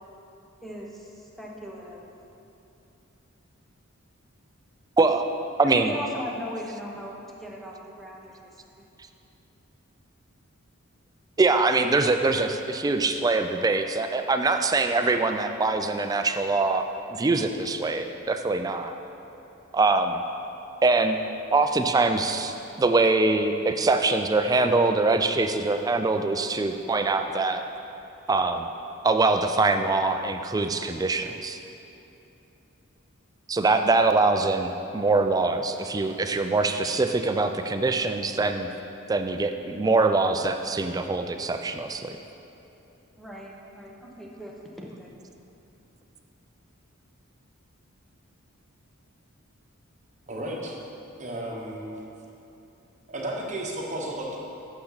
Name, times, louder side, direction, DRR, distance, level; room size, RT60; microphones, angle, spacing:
voice 1, 0.6-2.0 5.6-7.1 7.4-8.8 43.2-45.1, equal, ahead, -3 dB, 0.8 m, -39 dB
voice 2, 5.0-5.3 5.6-6.0 11.4-18.9 19.7-20.2 20.8-21.2 21.5-27.6 28.3-28.7 29.0-31.6 33.5-38.7 39.1-42.2, right 3 dB, 20° right, 7 dB, 0.3 m, -23 dB
voice 3, 50.3-50.8 51.2-52.0 53.1-54.4, right 1 dB, 35° right, -1 dB, 1.0 m, -33 dB
8.7 x 6.5 x 4.0 m, 2.8 s
head